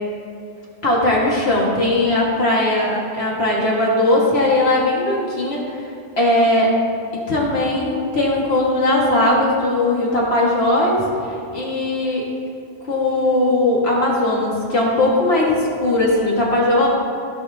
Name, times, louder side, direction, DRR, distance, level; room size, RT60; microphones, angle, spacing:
voice 1, 0.8-5.8 6.2-6.7 7.3-12.3 12.8-16.9, left 1 dB, 80° left, -4 dB, 2.1 m, -19 dB
16.5 x 6.8 x 2.8 m, 2.5 s
omnidirectional pair, 1.0 m